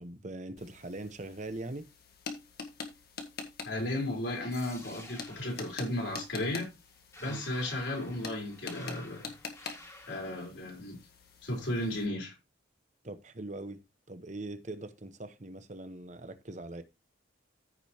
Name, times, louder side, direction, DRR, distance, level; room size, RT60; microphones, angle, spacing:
voice 1, 0.0-1.9 7.3-7.4 13.0-13.8 14.1-16.8, right 2 dB, 40° right, 1.0 m, -41 dB
sound 1, 0.6-12.1, left 4 dB, 55° left, 1.7 m, -46 dB
voice 2, 3.6-6.7 7.2-9.3 10.1-11.0 11.4-12.3, left 1 dB, 70° left, 4.3 m, -34 dB
sound 2, 4.5-10.5, left 2 dB, 15° left, 1.9 m, -52 dB
15.0 x 5.2 x 2.9 m
head